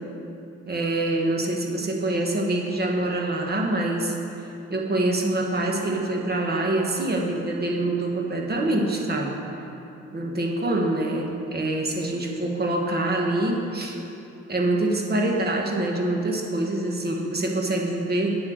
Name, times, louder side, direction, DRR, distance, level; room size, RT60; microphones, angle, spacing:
voice 1, 0.7-4.1 4.7-9.7 10.1-14.0 14.5-18.4, right 2 dB, 30° right, 0 dB, 1.5 m, -25 dB
8.7 x 7.6 x 6.4 m, 2.9 s
cardioid pair, 90°, 30 cm